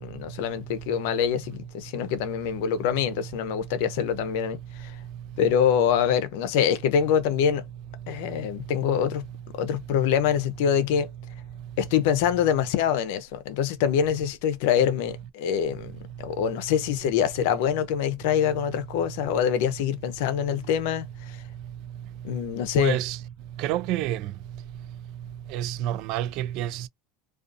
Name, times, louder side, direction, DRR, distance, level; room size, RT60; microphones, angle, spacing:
voice 1, 0.0-5.0 5.4-7.6 8.1-9.2 9.6-11.1 11.8-15.9 16.2-21.4 22.2-23.0, left 8 dB, 75° left, 0.6 m, -25 dB
voice 2, 22.8-23.2 23.6-24.2 25.5-26.9, right 13 dB, 55° right, 0.3 m, -28 dB
2.5 x 2.3 x 2.5 m
supercardioid pair, 145°, 0 cm